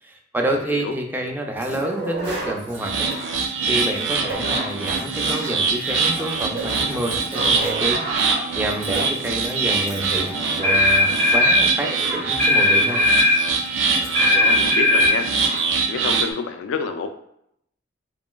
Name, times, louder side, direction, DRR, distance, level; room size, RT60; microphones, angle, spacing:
voice 1, 0.0-3.1 3.4-8.0 8.3-13.0, right 1 dB, 10° right, 2 dB, 0.3 m, -28 dB
voice 2, 0.5-0.9 14.3-15.3 15.9-17.1, left 5 dB, 75° left, 8 dB, 0.3 m, -28 dB
sound 1, 1.6-14.8 15.0-15.1 15.3-15.7, right 2 dB, 55° right, 1.0 m, -33 dB
sound 2, 2.8-16.3, right 4 dB, 75° right, 0.4 m, -24 dB
sound 3, 10.6-11.6 12.4-13.4 14.1-15.1, left 2 dB, 40° right, 0.7 m, -17 dB
3.0 x 2.5 x 2.2 m, 0.73 s
head